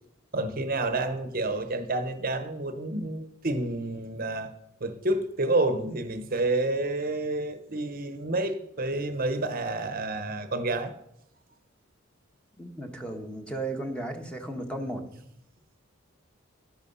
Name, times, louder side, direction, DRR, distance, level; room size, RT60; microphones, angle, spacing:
voice 1, 0.3-4.5 4.8-10.9, right 2 dB, 45° right, 0.9 m, -29 dB
voice 2, 12.6-15.1, right 1 dB, 5° left, 1.3 m, -35 dB
12.0 x 11.0 x 5.5 m
head